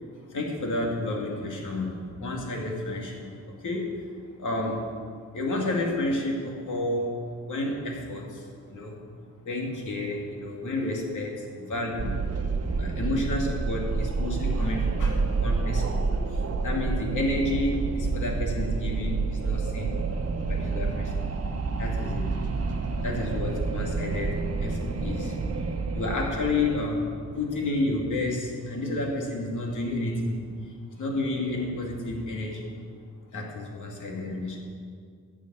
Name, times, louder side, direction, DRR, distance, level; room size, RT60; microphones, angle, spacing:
voice 1, 0.3-4.0 4.4-4.9 5.3-7.2 7.5-9.0 9.4-12.2 12.8-20.0 20.5-21.3 21.8-22.3 23.0-30.6 31.0-32.7 33.3-34.6, left 2 dB, 85° left, 0 dB, 2.4 m, -31 dB
Wind, 12.0-27.3, right 4 dB, 55° right, 1.1 m, -29 dB
11.5 x 7.3 x 8.8 m, 2.1 s
wide cardioid pair, 105°, 30 cm